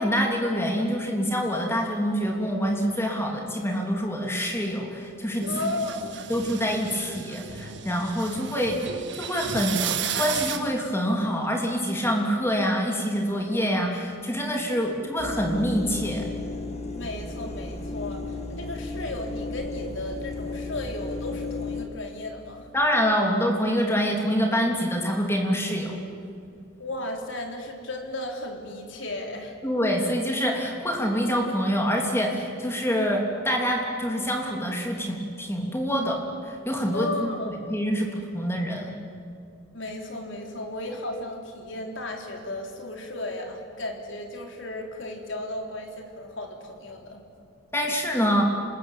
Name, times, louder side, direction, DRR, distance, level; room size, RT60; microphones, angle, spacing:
voice 1, 0.0-5.7 6.3-8.7 9.1-16.3 22.7-26.0 29.6-33.2 33.4-38.9 47.7-48.4, equal, 10° left, 1 dB, 3.2 m, -26 dB
sound 1, 5.4-10.6, right 7 dB, 55° right, 1.9 m, -33 dB
voice 2, 5.5-6.1 8.6-8.7 14.7-14.9 16.9-22.7 26.8-29.6 36.9-37.5 39.7-47.2, left 2 dB, 60° left, 2 dB, 3.9 m, -34 dB
sound 2, 15.2-21.9, left 3 dB, 30° left, 2.0 m, -34 dB
26.5 x 20.5 x 9.1 m, 2.4 s
head